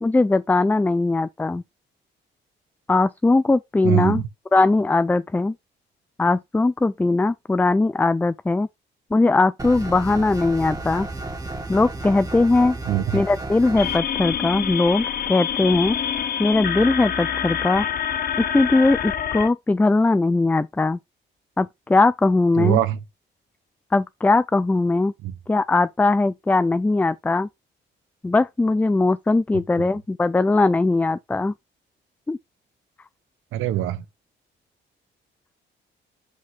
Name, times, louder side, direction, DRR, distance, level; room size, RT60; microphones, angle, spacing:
voice 1, 0.0-1.6 2.9-4.2 4.5-5.5 6.2-8.7 9.1-11.1 11.7-12.8 13.1-16.0 16.4-17.9 18.4-21.0 21.6-22.8 23.9-25.1 25.5-27.5 28.2-31.5 32.3-32.4, left 3 dB, 10° left, 0.3 m, -20 dB
voice 2, 3.8-4.3 12.9-13.2 22.6-23.0 25.2-25.3 33.5-34.0, right 12 dB, 85° right, 0.8 m, -22 dB
sound 1, 9.6-14.0, right 2 dB, 20° right, 1.7 m, -32 dB
sound 2, 13.8-19.5, left 8 dB, 50° left, 0.9 m, -26 dB
5.6 x 5.2 x 3.8 m
cardioid pair, 90°, 20 cm